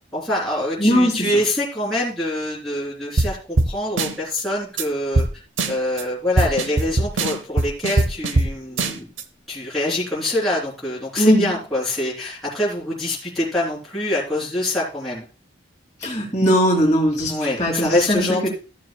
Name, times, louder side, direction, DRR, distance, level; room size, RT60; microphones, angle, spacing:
voice 1, 0.1-5.3 5.7-9.1 9.5-15.2 17.3-18.5, left 1 dB, ahead, -8 dB, 3.2 m, -25 dB
voice 2, 0.8-1.3 11.2-11.5 16.0-18.5, equal, 20° left, -7 dB, 2.4 m, -19 dB
sound 1, 3.2-3.3 3.6-3.7 4.0-4.4 4.8-4.9 5.2-5.3 5.6-6.0 6.4-8.5 8.8-9.2, right 2 dB, 80° right, 0.8 m, -20 dB
14.0 x 7.6 x 2.3 m, 0.35 s
head